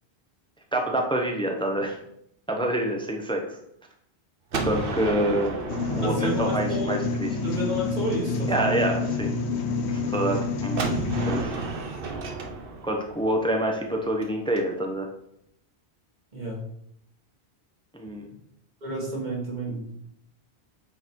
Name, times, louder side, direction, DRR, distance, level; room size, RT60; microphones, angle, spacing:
voice 1, 0.7-2.0 2.5-3.6 4.5-5.5 6.0-7.3 8.5-9.3 9.9-10.9 11.3-11.5 12.8-15.1 17.9-18.2, right 1 dB, 5° left, 2 dB, 0.8 m, -27 dB
Gunshot gunfire, 4.5-7.3 10.8-14.6, right 3 dB, 60° right, 1.0 m, -33 dB
sound 1, 5.7-11.4, left 3 dB, 80° left, 1.1 m, -28 dB
voice 2, 6.0-6.9 7.4-8.8 16.3-16.6 18.8-19.8, right 1 dB, 45° right, -4 dB, 1.8 m, -30 dB
8.0 x 3.9 x 4.6 m, 0.73 s
omnidirectional pair, 1.1 m